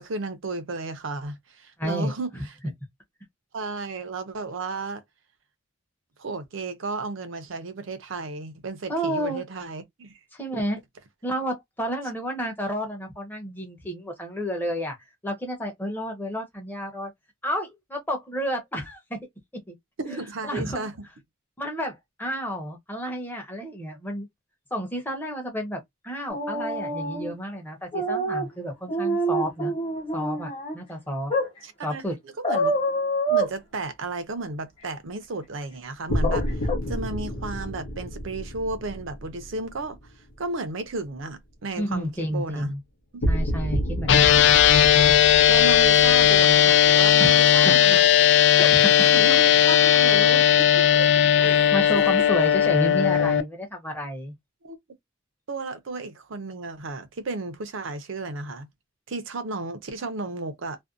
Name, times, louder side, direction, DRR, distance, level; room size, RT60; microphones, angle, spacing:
voice 1, 0.0-2.3 3.5-5.0 6.2-10.1 20.0-20.9 31.6-32.0 32.4-32.7 33.3-36.5 36.9-40.0 40.4-42.7 43.1-43.2 44.3-44.5 45.5-48.1 49.0-51.1 51.4-52.3 54.6-54.8 55.5-58.7 59.1-60.8, right 3 dB, 65° right, 0.5 m, -33 dB
voice 2, 1.8-2.4 8.9-9.4 10.3-10.8 11.2-15.0 15.2-17.1 17.4-19.2 19.7-19.8 20.1-20.9 21.6-24.3 24.7-29.7 30.1-31.3 31.8-32.2 41.8-42.8 43.3-44.5 47.2-47.7 48.6-49.0 51.4-54.3, equal, 10° left, 0.7 m, -31 dB
sound 1, 26.3-27.3 27.9-28.4 28.9-30.7 31.3-31.5 32.4-33.5 36.2-36.4 36.7-36.8, right 1 dB, 25° left, 1.0 m, -26 dB
sound 2, 36.1-40.4 43.2-47.8, equal, 90° left, 0.8 m, -30 dB
sound 3, 44.1-53.4, left 10 dB, 55° left, 0.3 m, -17 dB
2.5 x 2.1 x 2.4 m
head